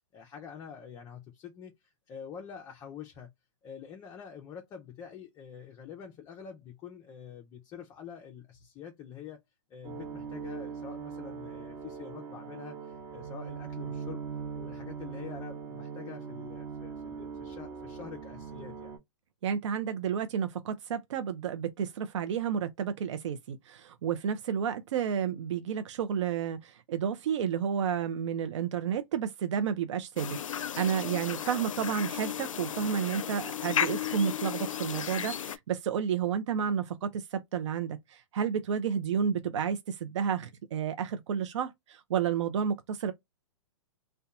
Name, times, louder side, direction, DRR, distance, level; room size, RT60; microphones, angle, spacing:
voice 1, 0.1-3.3 3.6-9.4 9.7-14.2 14.5-19.0, left 8 dB, 20° left, 0.4 m, -46 dB
sound 1, 9.8-19.0, right 6 dB, 30° right, 1.0 m, -40 dB
voice 2, 19.4-43.1, right 8 dB, 65° right, 0.5 m, -31 dB
sound 2, 30.2-35.6, left 9 dB, 85° left, 0.4 m, -34 dB
2.8 x 2.1 x 2.3 m
hypercardioid pair, 125°, 16 cm